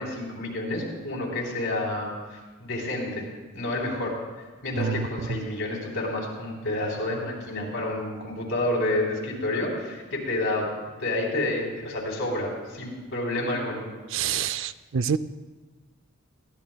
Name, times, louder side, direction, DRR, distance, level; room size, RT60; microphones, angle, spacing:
voice 1, 0.0-3.3 3.5-4.2 4.6-10.7 11.0-13.9, left 1 dB, 65° left, -2 dB, 3.6 m, -29 dB
voice 2, 14.1-15.2, right 7 dB, 60° right, 14 dB, 0.4 m, -27 dB
21.0 x 16.5 x 2.3 m, 1.3 s
head